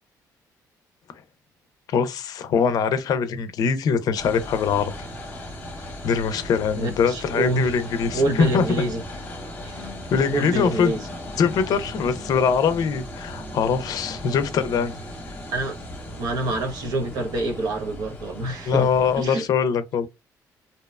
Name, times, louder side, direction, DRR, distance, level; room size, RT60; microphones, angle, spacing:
voice 1, 1.9-4.9 6.0-8.6 10.1-10.9 11.4-15.4 18.7-20.1, left 6 dB, 65° left, 0.5 m, -22 dB
sound 1, 4.1-19.2, left 1 dB, 25° left, 0.8 m, -37 dB
voice 2, 6.7-7.7 8.1-9.0 9.6-9.9 10.2-11.1 15.5-15.7 16.2-18.9 19.2-19.4, right 1 dB, 70° right, 0.7 m, -26 dB
2.7 x 2.1 x 2.3 m
cardioid pair, 140°, 7 cm